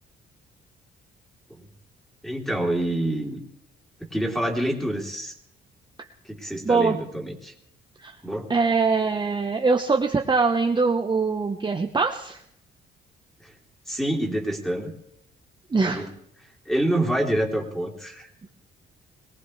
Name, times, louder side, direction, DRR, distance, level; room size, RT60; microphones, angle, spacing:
voice 1, 2.2-3.4 4.1-5.3 6.2-7.5 8.2-8.5 13.4-13.5 13.9-14.9 15.8-16.1 16.6-18.3, right 1 dB, ahead, 1 dB, 3.3 m, -27 dB
voice 2, 6.6-7.0 8.0-8.1 8.5-12.4 15.7-16.0, right 4 dB, 20° right, 3 dB, 1.0 m, -22 dB
22.5 x 18.5 x 3.3 m, 0.71 s
cardioid pair, 90°, 20 cm